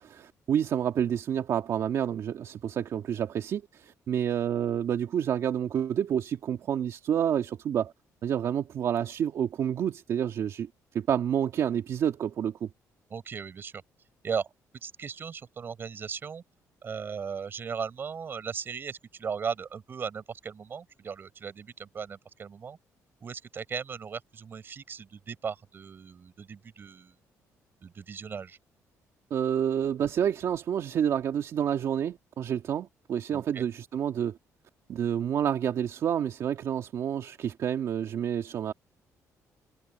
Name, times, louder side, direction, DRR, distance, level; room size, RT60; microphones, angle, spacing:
voice 1, 0.0-7.9 8.2-10.7 10.9-12.7 29.3-34.4 34.9-38.7, right 9 dB, 55° right, 2.1 m, -29 dB
voice 2, 13.1-13.8 14.2-14.5 14.8-16.4 16.8-22.8 23.2-27.2 27.8-28.6 33.3-33.6, right 6 dB, 35° right, 5.5 m, -37 dB
cardioid pair, 140°, 6 cm